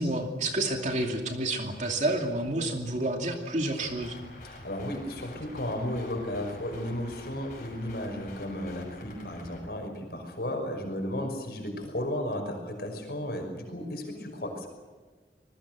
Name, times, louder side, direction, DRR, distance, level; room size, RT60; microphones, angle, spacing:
voice 1, 0.0-4.1, right 1 dB, 40° right, 2 dB, 2.7 m, -29 dB
sound 1, 3.8-9.6, left 1 dB, 45° left, 6.6 m, -47 dB
voice 2, 4.4-14.7, left 1 dB, 65° left, 4 dB, 5.8 m, -34 dB
26.5 x 20.5 x 6.3 m, 1.4 s
head